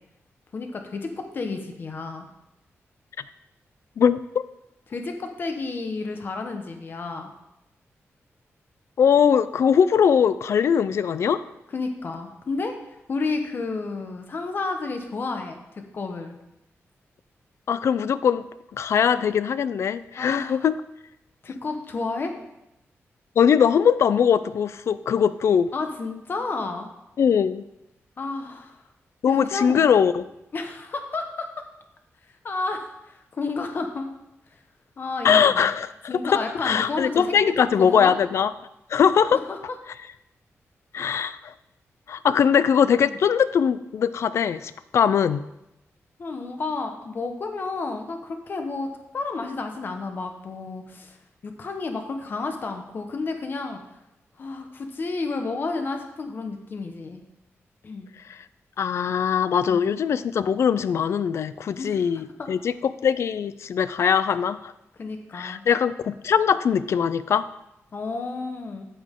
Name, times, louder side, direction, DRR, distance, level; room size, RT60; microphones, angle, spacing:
voice 1, 0.5-2.3 4.9-7.3 11.7-12.7 13.1-15.6 15.9-16.4 20.2-20.6 21.4-22.3 25.7-26.9 28.2-28.8 29.2-29.8 30.5-31.5 32.4-34.1 35.0-35.7 36.1-38.1 39.5-39.8 43.0-43.2 46.2-48.9 49.1-51.2 51.4-53.8 54.4-57.2 57.8-58.1 59.7-59.9 61.8-62.0 62.4-62.5 65.0-65.6 67.9-68.9, left 3 dB, 45° left, 5 dB, 1.1 m, -31 dB
voice 2, 4.0-4.4 9.0-11.4 17.7-18.5 18.7-20.7 23.4-25.7 27.2-27.6 29.2-30.2 35.2-35.9 36.2-38.5 38.9-39.4 40.9-41.5 42.1-45.4 58.3-58.4 58.8-64.7 65.3-67.5, left 7 dB, 65° left, 15 dB, 0.4 m, -21 dB
8.6 x 8.4 x 3.7 m, 0.88 s
wide cardioid pair, 160°, 5 cm